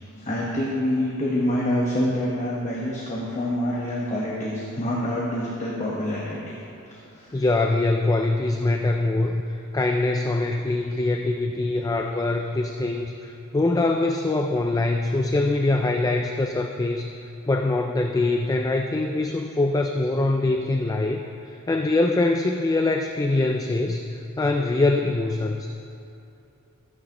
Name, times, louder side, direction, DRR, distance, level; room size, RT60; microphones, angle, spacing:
voice 1, 0.2-7.4, left 1 dB, 35° left, -5 dB, 1.2 m, -27 dB
voice 2, 7.3-17.1 17.5-25.7, left 2 dB, 15° left, 4 dB, 0.3 m, -23 dB
14.0 x 9.6 x 3.0 m, 2.8 s
head